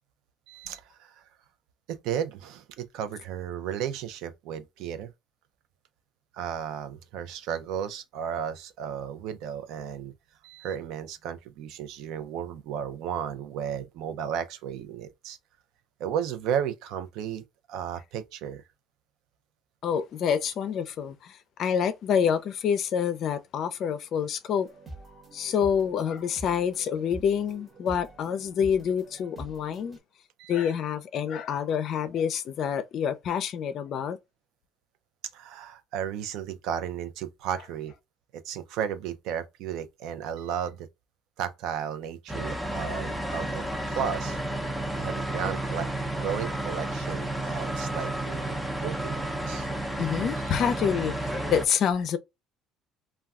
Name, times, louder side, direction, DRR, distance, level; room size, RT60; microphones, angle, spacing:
voice 1, 0.5-1.3 1.9-5.1 6.3-10.1 10.4-15.4 16.0-17.4 17.7-18.6 30.4-30.7 35.3-37.9 38.3-40.9 41.4-44.4 45.0-45.9 46.2-49.7 50.4-50.7, right 8 dB, 75° right, 0.5 m, -34 dB
voice 2, 19.8-24.7 25.3-30.0 30.5-34.2 50.0-52.2, left 8 dB, 55° left, 0.4 m, -27 dB
sound 1, 24.6-30.0, right 2 dB, 25° right, 1.0 m, -45 dB
sound 2, 42.3-51.7, right 1 dB, 5° right, 0.6 m, -31 dB
2.3 x 2.2 x 3.5 m
cardioid pair, 105°, 0 cm